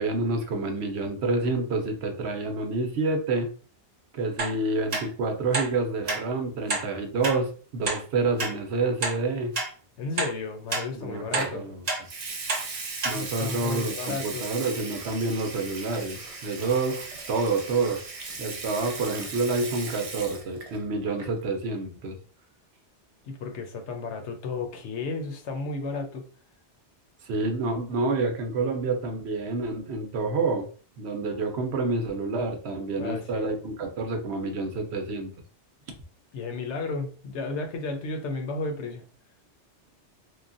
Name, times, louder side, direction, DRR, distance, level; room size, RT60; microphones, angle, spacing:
voice 1, 0.0-3.5 4.1-9.5 10.9-11.8 13.0-18.0 18.4-22.2 27.2-30.7 31.0-35.3, right 3 dB, 70° right, 4 dB, 0.8 m, -28 dB
sound 1, 4.4-4.5 4.9-5.0 5.5-5.7 6.1-6.2 6.7-6.9 7.2-7.4 7.8-8.0 8.4-8.5 9.0-9.2 9.5-9.7 10.2-10.3 10.7-10.9 11.3-11.5 11.9-12.0 12.5-12.6 13.0-13.2 13.6-13.7, right 3 dB, 40° right, 0.7 m, -28 dB
voice 2, 10.0-11.7 13.1-14.5 23.2-26.2 33.0-33.5 36.3-39.0, left 3 dB, 80° left, 4 dB, 0.9 m, -33 dB
Water tap faucet / Sink (filling or washing) / Liquid, 11.4-11.6 12.0-20.8 21.1-21.4, right 4 dB, 55° right, 0.4 m, -38 dB
3.2 x 2.2 x 2.5 m, 0.41 s
omnidirectional pair, 1.2 m